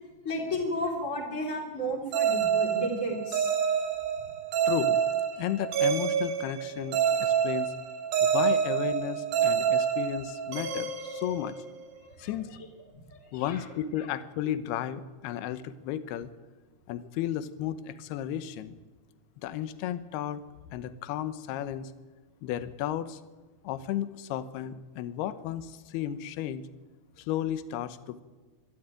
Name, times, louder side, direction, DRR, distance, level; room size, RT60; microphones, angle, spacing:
voice 1, 0.2-3.5 12.2-12.3 13.1-13.6, equal, 20° left, -2 dB, 3.2 m, -33 dB
sound 1, 2.1-11.9, right 8 dB, 70° right, 3.7 m, -27 dB
voice 2, 4.7-5.0 5.4-7.7 8.2-11.5 12.2-12.6 13.3-16.3 16.9-18.7 19.4-20.4 20.7-21.9 22.4-23.2 23.6-26.7 27.2-28.2, left 11 dB, 80° left, 13 dB, 3.0 m, -33 dB
24.5 x 13.0 x 9.0 m, 1.3 s
omnidirectional pair, 4.6 m